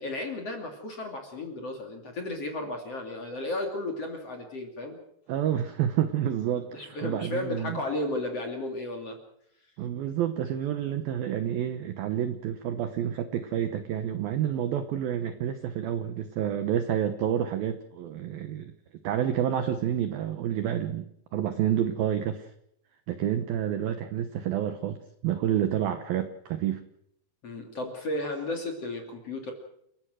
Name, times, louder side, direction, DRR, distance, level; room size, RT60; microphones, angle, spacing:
voice 1, 0.0-5.0 6.7-9.2 27.4-29.5, left 2 dB, 40° left, 3 dB, 2.8 m, -34 dB
voice 2, 5.3-7.8 9.8-18.7 19.0-21.1 21.3-22.5 23.1-25.0 25.2-26.8, right 10 dB, 85° right, 9 dB, 2.0 m, -29 dB
29.5 x 15.0 x 6.3 m, 0.74 s
omnidirectional pair, 5.9 m